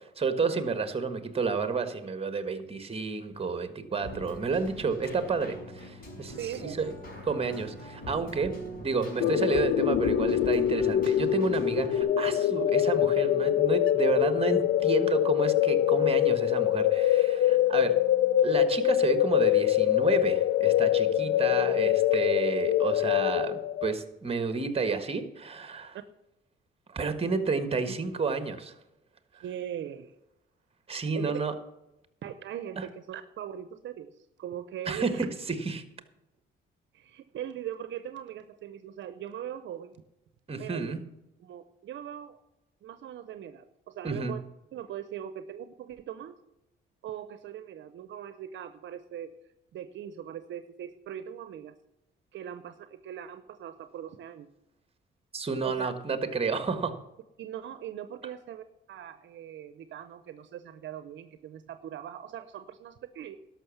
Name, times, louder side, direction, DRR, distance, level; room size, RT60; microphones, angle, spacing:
voice 1, 0.2-6.9 7.2-8.5 8.8-18.0 18.4-26.0 26.9-28.7 30.9-31.5 32.8-32.9 34.9-35.8 40.5-41.0 44.0-44.3 55.3-57.0, right 4 dB, 30° right, 10 dB, 1.4 m, -30 dB
Keyboard (musical), 4.0-12.0, right 1 dB, 45° left, 5.1 m, -42 dB
voice 2, 6.4-7.0 27.9-28.0 29.4-30.2 31.1-31.3 32.2-35.3 36.9-40.0 40.6-40.9 41.4-42.4 42.8-44.4 44.7-46.3 47.0-49.3 49.7-51.7 52.3-54.5 55.6-55.9 57.4-63.4, right 10 dB, 70° right, 11 dB, 0.7 m, -40 dB
sound 1, 9.2-23.9, left 12 dB, 75° left, 0.6 m, -24 dB
12.5 x 6.2 x 7.1 m, 0.93 s
cardioid pair, 90°, 20 cm